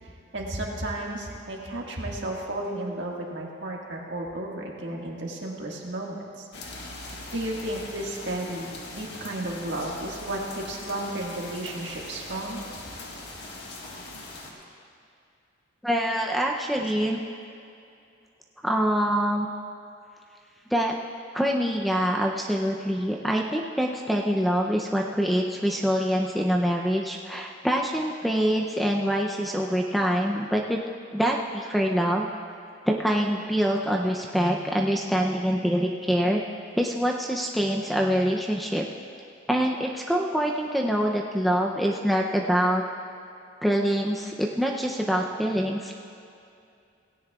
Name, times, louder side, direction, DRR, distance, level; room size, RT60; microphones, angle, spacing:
voice 1, 0.3-6.5 7.3-12.6, right 1 dB, 60° right, -2 dB, 1.8 m, -33 dB
sound 1, 6.5-14.5, left 2 dB, 55° left, 1.6 m, -41 dB
voice 2, 15.8-17.2 18.6-19.5 20.7-20.9 21.3-30.8 31.1-32.3 32.9-36.4 36.8-38.8 39.5-42.8 43.6-45.9, equal, ahead, 0 dB, 0.5 m, -25 dB
18.0 x 16.5 x 2.4 m, 2.5 s
head